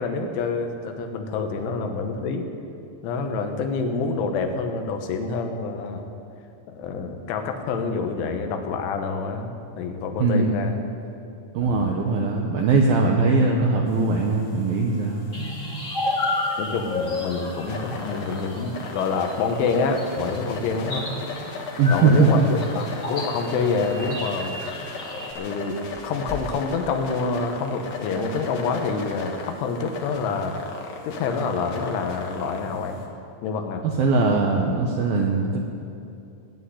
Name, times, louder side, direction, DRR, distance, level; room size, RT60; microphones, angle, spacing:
voice 1, 0.0-2.5 3.0-6.1 6.7-10.8 11.6-11.8 16.6-21.2 21.9-24.6 25.4-30.6 31.0-33.0 33.4-33.9, left 4 dB, 80° left, 5 dB, 3.5 m, -27 dB
voice 2, 10.2-10.7 11.5-15.3 21.8-22.5 34.0-35.6, right 3 dB, 80° right, 1 dB, 2.1 m, -20 dB
sound 1, 13.9-33.1, left 3 dB, 60° left, 2.1 m, -38 dB
sound 2, 15.3-25.3, left 2 dB, 35° left, 1.2 m, -32 dB
sound 3, 22.0-22.7 22.9-23.0 23.8-23.9 24.7-24.9 25.3-25.4 25.9-27.1, left 1 dB, ahead, 1.7 m, -39 dB
16.5 x 8.5 x 9.7 m, 2.6 s
omnidirectional pair, 5.5 m